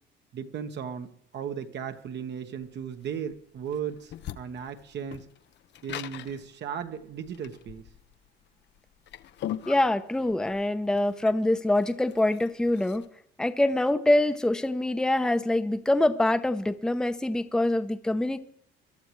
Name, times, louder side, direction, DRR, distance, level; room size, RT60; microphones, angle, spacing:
voice 1, 0.3-5.3 5.8-7.9, right 7 dB, 60° right, 7 dB, 1.4 m, -36 dB
sound 1, 2.6-13.1, left 12 dB, 60° left, 0.7 m, -41 dB
voice 2, 9.7-13.0 13.4-18.4, left 1 dB, 5° left, 9 dB, 0.7 m, -25 dB
22.0 x 11.5 x 3.2 m, 0.66 s
cardioid pair, 100°, 20 cm